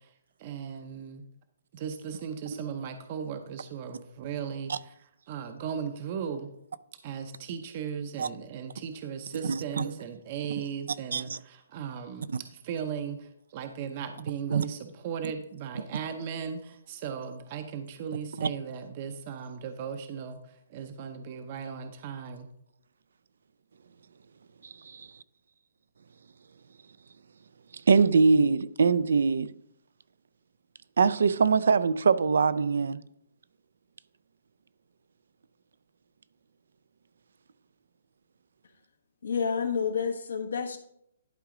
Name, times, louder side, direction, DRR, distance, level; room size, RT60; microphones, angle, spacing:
voice 1, 0.4-1.2 1.7-4.9 5.3-6.5 7.0-20.4 20.7-22.5, right 7 dB, 35° right, 0.7 m, -37 dB
voice 2, 9.4-9.9 10.6-10.7 11.1-11.4 14.5-14.6 18.4-18.5 24.9-25.1 27.9-29.6 31.0-33.0, right 5 dB, 75° right, 0.4 m, -23 dB
voice 3, 39.2-40.8, left 6 dB, 85° left, 1.3 m, -29 dB
11.5 x 4.9 x 3.8 m
hypercardioid pair, 160°, 0 cm